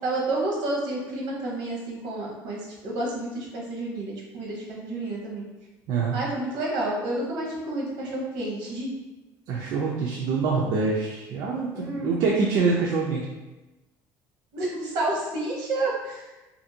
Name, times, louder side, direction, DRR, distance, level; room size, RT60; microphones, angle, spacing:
voice 1, 0.0-5.5 6.1-8.9 11.7-12.2 14.5-16.2, right 2 dB, 80° right, -3 dB, 0.9 m, -30 dB
voice 2, 9.5-13.3, right 4 dB, 60° right, -3 dB, 0.4 m, -25 dB
2.6 x 2.4 x 2.7 m, 1.1 s
cardioid pair, 160°, 7 cm